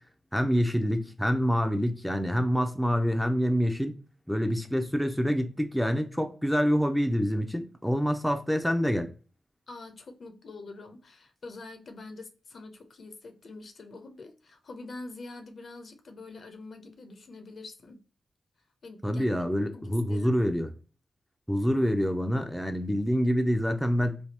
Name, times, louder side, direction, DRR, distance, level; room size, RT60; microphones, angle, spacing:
voice 1, 0.3-3.9 4.3-9.1 19.0-20.7 21.5-24.2, equal, ahead, 0.5 m, -26 dB
voice 2, 9.7-18.0 18.8-19.4 19.7-20.5, left 3 dB, 65° left, 0.7 m, -45 dB
3.4 x 2.3 x 2.7 m
cardioid pair, 75°, 0 cm